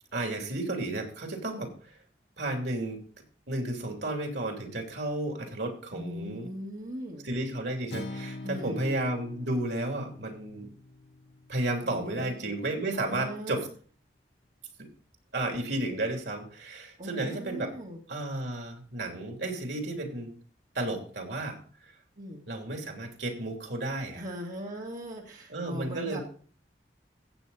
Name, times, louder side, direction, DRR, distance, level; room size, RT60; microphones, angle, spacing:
voice 1, 0.1-1.7 2.4-3.0 3.5-6.5 7.2-10.7 11.5-13.7 14.8-14.9 15.3-17.7 18.1-20.3 20.7-21.6 21.8-21.9 22.5-24.2 25.5-26.2, right 2 dB, 80° right, 3 dB, 3.1 m, -32 dB
voice 2, 5.9-7.3 8.4-9.0 11.8-12.5 12.9-13.6 17.0-18.0 22.2-22.4 24.1-26.2, equal, 45° right, -2 dB, 2.1 m, -39 dB
Acoustic guitar, 7.9-12.1, left 2 dB, 70° left, 1.2 m, -43 dB
15.0 x 8.5 x 4.2 m, 0.43 s
head